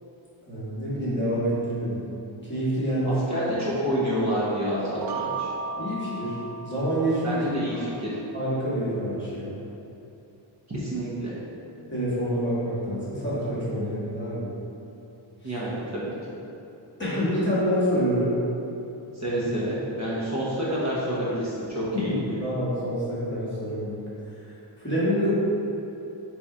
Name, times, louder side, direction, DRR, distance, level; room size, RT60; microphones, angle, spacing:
voice 1, 0.5-2.0 2.5-3.2 5.8-7.4 8.3-9.5 11.9-14.5 15.4-15.6 17.0-18.3 21.9-24.0 24.8-25.3, equal, 25° left, -9 dB, 1.2 m, -27 dB
voice 2, 3.0-5.5 7.2-8.1 10.7-11.3 15.4-16.1 19.1-22.1, equal, 35° right, -9 dB, 0.9 m, -28 dB
sound 1, 4.8-7.6, right 4 dB, 50° right, 0.4 m, -35 dB
3.8 x 2.9 x 4.7 m, 2.9 s
wide cardioid pair, 160°, 48 cm